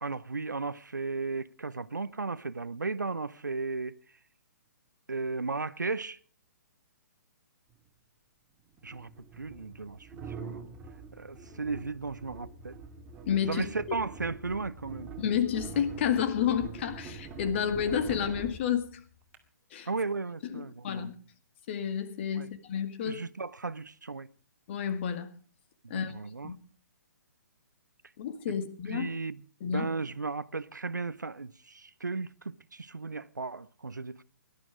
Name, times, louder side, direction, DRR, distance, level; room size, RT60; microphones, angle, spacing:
voice 1, 0.0-3.9 5.1-6.2 8.8-9.1 9.4-10.6 11.1-12.8 13.5-15.1 19.9-21.1 22.4-22.5 23.1-24.3 25.8-26.5 28.9-34.2, right 3 dB, 80° right, 0.8 m, -35 dB
sound 1, 7.7-7.8 8.8-19.4, right 4 dB, 15° right, 2.1 m, -44 dB
voice 2, 13.3-13.7 15.2-18.9 19.7-19.9 20.5-21.1 21.7-23.2 24.7-25.3 25.9-26.1 26.4-26.5 28.2-29.1 29.6-29.9, left 8 dB, 40° left, 2.0 m, -30 dB
18.0 x 11.5 x 4.9 m
figure-of-eight pair, 125°, 10 cm